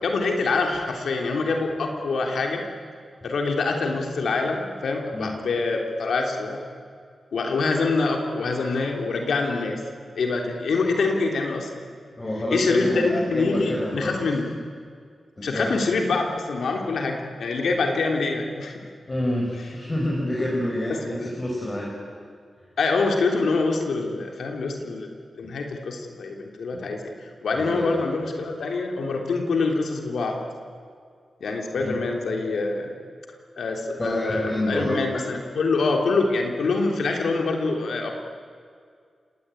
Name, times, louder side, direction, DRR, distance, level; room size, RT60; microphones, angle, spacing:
voice 1, 0.0-2.6 3.2-6.6 7.3-9.8 10.2-11.8 12.5-14.5 15.4-18.8 20.9-21.3 22.8-25.1 25.4-30.4 31.4-32.9 33.6-38.1, left 3 dB, 80° left, 2 dB, 3.4 m, -25 dB
voice 2, 12.2-14.2 15.4-15.7 19.1-22.0 26.7-26.8 27.5-27.9 31.7-32.0 34.0-35.0, left 1 dB, 25° left, -2 dB, 5.2 m, -27 dB
30.0 x 18.5 x 9.2 m, 2.1 s
wide cardioid pair, 100°, 0 cm